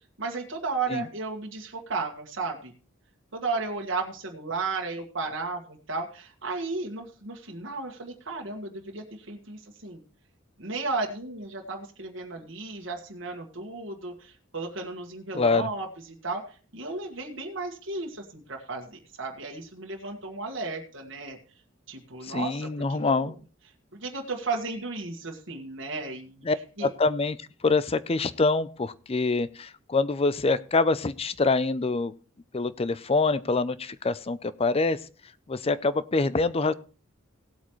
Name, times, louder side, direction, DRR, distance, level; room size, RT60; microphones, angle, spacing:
voice 1, 0.2-2.7 3.3-10.0 10.6-15.9 16.2-16.4 16.7-21.4 21.9-23.3 23.9-26.5 26.8-26.9, right 3 dB, 65° right, 1 dB, 1.7 m, -34 dB
voice 2, 15.3-15.7 22.2-23.3 26.4-26.6 26.8-27.4 27.6-32.1 32.5-35.0 35.5-36.7, left 3 dB, 30° left, 16 dB, 0.5 m, -25 dB
17.5 x 8.3 x 3.1 m, 0.37 s
head